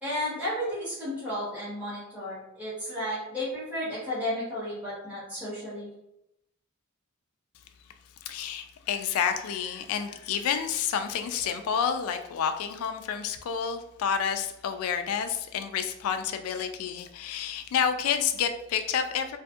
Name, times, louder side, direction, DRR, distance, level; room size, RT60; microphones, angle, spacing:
voice 1, 0.0-5.9, left 1 dB, 10° right, -11 dB, 1.2 m, -33 dB
voice 2, 8.3-19.4, left 7 dB, 85° left, 7 dB, 0.3 m, -29 dB
2.6 x 2.5 x 2.3 m, 0.82 s
head